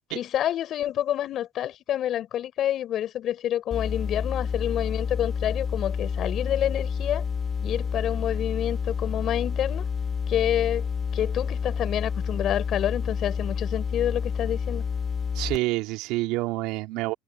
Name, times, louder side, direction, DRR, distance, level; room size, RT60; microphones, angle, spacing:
voice 1, 0.1-7.2 7.6-9.8 10.3-10.9 11.1-14.8, left 11 dB, 60° left, 4.8 m, -28 dB
sound 1, 3.7-15.6, left 6 dB, 40° left, 2.5 m, -29 dB
voice 2, 15.3-17.1, right 20 dB, 75° right, 2.8 m, -28 dB
supercardioid pair, 75°, 0 cm